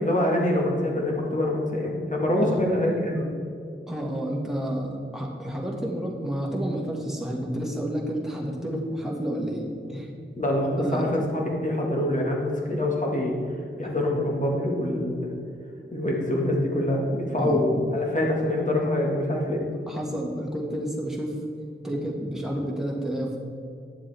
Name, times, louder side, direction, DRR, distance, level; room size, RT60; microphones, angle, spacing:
voice 1, 0.0-3.2 10.4-13.3 13.8-15.3 15.9-17.7 17.9-19.6 21.9-22.0, left 1 dB, 35° left, -2 dB, 1.9 m, -25 dB
voice 2, 3.9-9.6 9.9-10.1 10.8-11.0 13.8-13.9 17.4-17.6 19.9-21.4 21.8-23.4, right 1 dB, ahead, -3 dB, 2.0 m, -30 dB
10.0 x 7.2 x 3.6 m, 2.4 s
wide cardioid pair, 50°, 21 cm